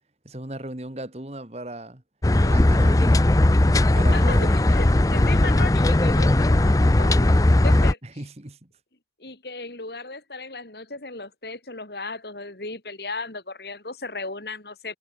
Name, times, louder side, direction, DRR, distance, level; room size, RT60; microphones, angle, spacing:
voice 1, 0.2-2.0 2.4-3.3 3.9-5.0 8.0-8.7, right 1 dB, 35° right, 1.8 m, -36 dB
sound 1, 2.2-7.9, left 1 dB, 20° left, 0.5 m, -18 dB
voice 2, 4.1-8.0 9.2-15.0, left 3 dB, 70° left, 3.5 m, -35 dB
head